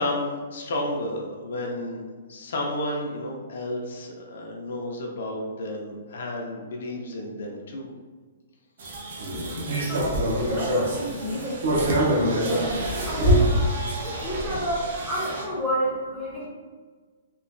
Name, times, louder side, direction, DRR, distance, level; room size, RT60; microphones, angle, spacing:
voice 1, 0.0-2.0 2.3-7.9, left 1 dB, 65° left, 0 dB, 0.4 m, -31 dB
sound 1, 8.8-15.4, equal, 55° right, 0.6 m, -25 dB
voice 2, 9.9-11.7 12.2-13.5 13.8-16.5, equal, 10° right, -7 dB, 0.6 m, -31 dB
2.9 x 2.1 x 2.5 m, 1.5 s
hypercardioid pair, 170°, 0 cm